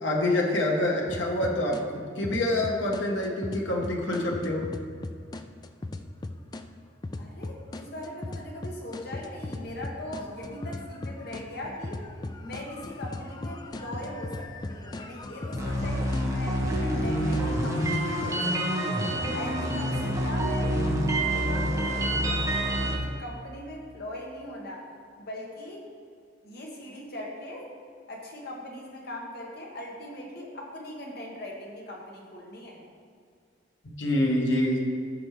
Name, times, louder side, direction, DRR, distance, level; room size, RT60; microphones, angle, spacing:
voice 1, 0.0-1.8 2.2-4.7 34.0-34.8, left 1 dB, 75° left, 0 dB, 1.4 m, -26 dB
sound 1, 1.1-1.8 2.2-6.6 7.0-18.3, left 2 dB, 20° left, 0.3 m, -38 dB
voice 2, 7.2-12.0 12.4-24.8 25.2-25.9 26.4-27.7 28.1-32.8, left 1 dB, 55° left, -2 dB, 1.7 m, -40 dB
sound 2, 15.5-22.9, right 1 dB, 15° right, 1.2 m, -27 dB
14.0 x 6.2 x 3.3 m, 2.2 s
head